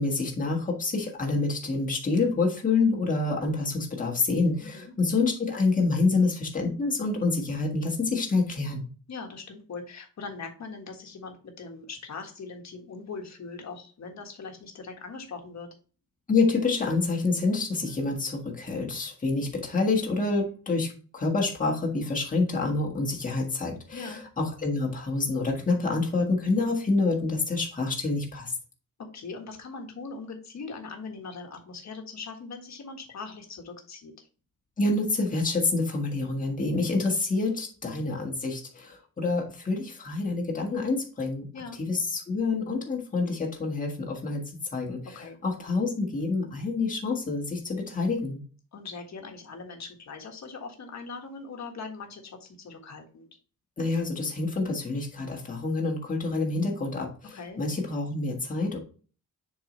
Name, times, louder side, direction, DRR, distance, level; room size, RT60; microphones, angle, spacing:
voice 1, 0.0-8.8 16.3-28.5 34.8-41.4 41.8-44.4 44.7-48.4 53.8-58.8, left 3 dB, 25° left, -1 dB, 1.6 m, -27 dB
voice 2, 4.6-4.9 9.1-15.7 23.9-24.2 29.1-34.3 41.5-41.8 45.1-45.4 48.7-53.3 57.3-57.6, left 4 dB, 55° left, 3 dB, 1.6 m, -41 dB
7.1 x 4.7 x 3.1 m, 0.38 s
wide cardioid pair, 165°, 34 cm